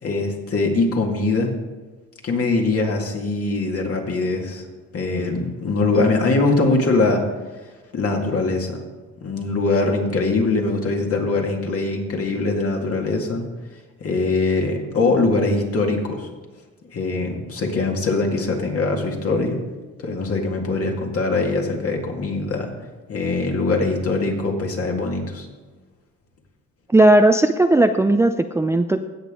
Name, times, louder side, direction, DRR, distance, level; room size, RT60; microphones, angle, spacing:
voice 1, 0.0-1.5 2.2-4.6 4.9-7.2 7.9-8.8 9.2-13.4 14.0-16.3 16.9-19.6 20.0-22.7 23.1-25.5, left 3 dB, 50° left, 1 dB, 2.1 m, -22 dB
voice 2, 26.9-29.0, right 1 dB, 10° right, 7 dB, 0.4 m, -16 dB
16.5 x 6.8 x 3.8 m, 1.3 s
cardioid pair, 90°, 30 cm